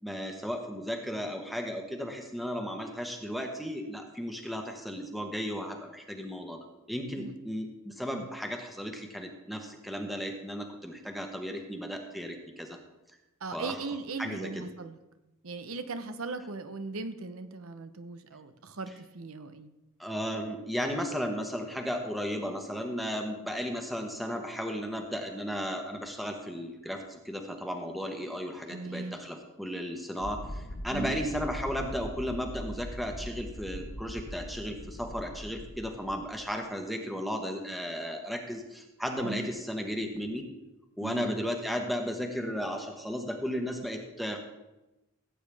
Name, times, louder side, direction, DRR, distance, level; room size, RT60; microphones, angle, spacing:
voice 1, 0.0-6.6 6.9-12.8 13.5-13.8 14.2-14.6 20.0-40.5 41.0-44.4, equal, ahead, 3 dB, 1.0 m, -35 dB
voice 2, 13.4-15.0 15.4-19.7 28.7-29.3 30.9-31.2 39.2-39.5 41.0-41.3, right 3 dB, 85° right, 10 dB, 0.9 m, -38 dB
sound 1, 30.2-36.4, equal, 85° left, 1.5 m, -41 dB
17.0 x 8.6 x 3.5 m, 1.0 s
head